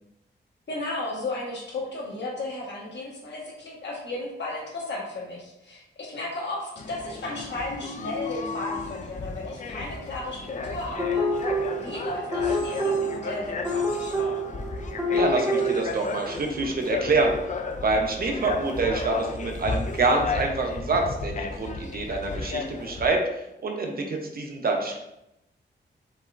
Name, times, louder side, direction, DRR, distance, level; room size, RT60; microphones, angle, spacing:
voice 1, 0.7-14.3 23.8-24.1, left 2 dB, 70° left, -4 dB, 1.5 m, -34 dB
sound 1, 6.8-23.1, left 4 dB, 40° left, 0.4 m, -34 dB
sound 2, 11.0-15.8, equal, 15° right, 1.1 m, -27 dB
voice 2, 15.1-17.4 17.8-23.2 23.6-25.0, right 3 dB, 55° right, 2 dB, 0.8 m, -26 dB
5.4 x 3.5 x 2.5 m, 0.86 s
wide cardioid pair, 135°, 19 cm